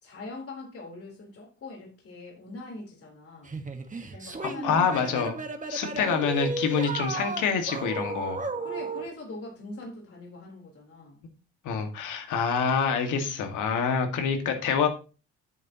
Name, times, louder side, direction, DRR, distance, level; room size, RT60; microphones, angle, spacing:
voice 1, 0.0-3.5 4.1-5.3 5.8-6.0 8.6-11.2, left 2 dB, 50° left, -1 dB, 4.0 m, -43 dB
sound 1, 3.5-9.1, right 3 dB, 25° right, 1.6 m, -34 dB
voice 2, 4.4-5.4 5.7-8.4 11.6-14.9, left 6 dB, 85° left, 5 dB, 2.0 m, -26 dB
9.8 x 8.4 x 3.0 m, 0.34 s
cardioid pair, 90°, 30 cm